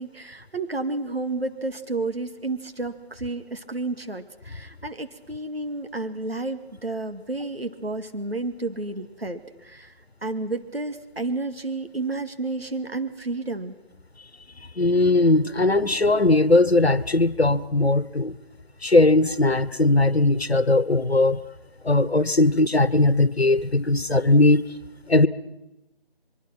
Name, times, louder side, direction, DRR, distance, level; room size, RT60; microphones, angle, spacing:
voice 1, 0.0-9.9 10.2-13.7, right 2 dB, 75° right, 8 dB, 2.2 m, -31 dB
voice 2, 14.8-18.4 18.8-21.4 21.8-24.6 25.1-25.3, left 2 dB, 80° left, 17 dB, 1.4 m, -19 dB
24.5 x 23.5 x 6.0 m, 0.93 s
figure-of-eight pair, 165°, 31 cm